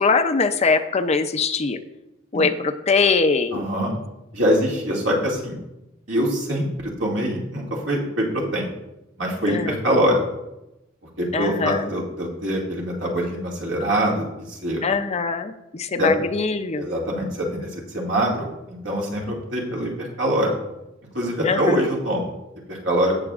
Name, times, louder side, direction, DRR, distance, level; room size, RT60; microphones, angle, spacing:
voice 1, 0.0-1.8 2.3-3.7 9.5-9.7 11.3-11.9 14.8-16.9 21.4-21.9, left 4 dB, 35° left, 8 dB, 0.5 m, -22 dB
voice 2, 3.5-3.9 4.3-5.6 6.1-8.7 9.2-10.2 11.2-14.8 16.0-16.1 16.8-20.5 21.1-22.3 22.7-23.1, equal, 70° right, -2 dB, 2.3 m, -24 dB
15.5 x 7.0 x 2.4 m, 0.94 s
head